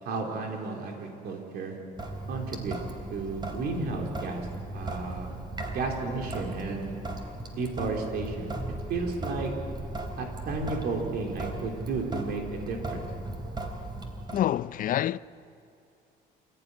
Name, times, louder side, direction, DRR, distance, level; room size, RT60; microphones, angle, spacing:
voice 1, 0.0-1.8 2.3-2.8 3.1-4.5 4.7-7.0 7.5-8.5 8.9-9.5 10.2-13.1, right 3 dB, 70° right, 4.0 m, -33 dB
Sink (filling or washing) / Drip, 2.0-14.4, right 2 dB, 25° right, 4.1 m, -37 dB
voice 2, 14.3-15.2, left 12 dB, 55° left, 0.5 m, -26 dB
28.5 x 16.0 x 10.0 m
cardioid pair, 110°, 17 cm